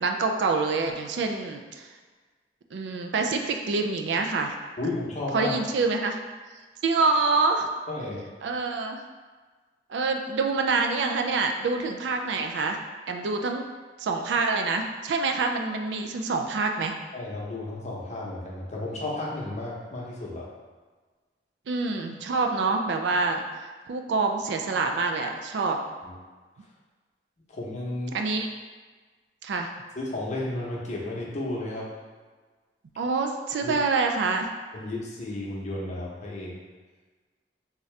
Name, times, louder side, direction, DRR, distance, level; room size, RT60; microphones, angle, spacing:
voice 1, 0.0-1.9 2.7-4.5 5.3-6.2 6.8-7.7 8.4-9.0 9.9-12.8 13.1-13.6 14.0-16.9 21.7-23.4 23.9-25.8 28.1-28.5 29.4-29.7 33.0-34.5, right 4 dB, 75° right, 4 dB, 0.4 m, -26 dB
voice 2, 4.8-5.6 7.9-8.2 17.1-20.5 26.0-26.1 27.5-28.2 30.0-31.9 33.6-33.7 34.7-36.5, left 2 dB, 40° left, -4 dB, 0.7 m, -33 dB
3.6 x 2.7 x 3.2 m, 1.4 s
head